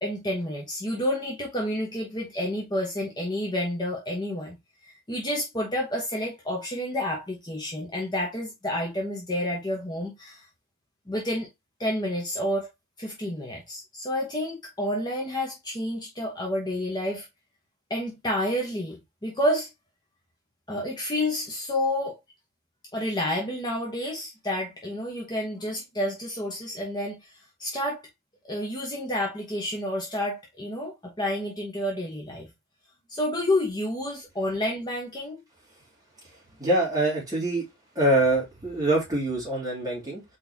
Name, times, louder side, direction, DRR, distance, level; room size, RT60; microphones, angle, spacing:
voice 1, 0.0-4.6 5.1-10.4 11.1-11.5 11.8-12.7 13.0-17.3 17.9-19.7 20.7-22.2 22.9-27.2 27.6-28.0 28.5-32.5 33.1-35.4, left 1 dB, 20° left, 1.3 m, -29 dB
voice 2, 36.6-37.6 37.9-40.2, right 1 dB, 20° right, 2.8 m, -24 dB
4.5 x 4.2 x 2.8 m
head